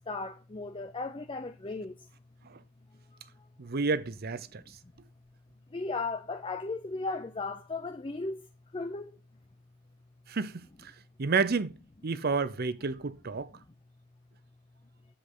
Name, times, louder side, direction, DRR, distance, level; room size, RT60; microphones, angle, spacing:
voice 1, 0.1-1.9 5.7-8.4 8.7-9.1, left 3 dB, 25° left, 0.6 m, -35 dB
voice 2, 3.6-4.8 10.3-10.9 11.2-11.8 12.0-13.5, right 4 dB, 45° right, 0.6 m, -30 dB
10.0 x 7.7 x 3.9 m
head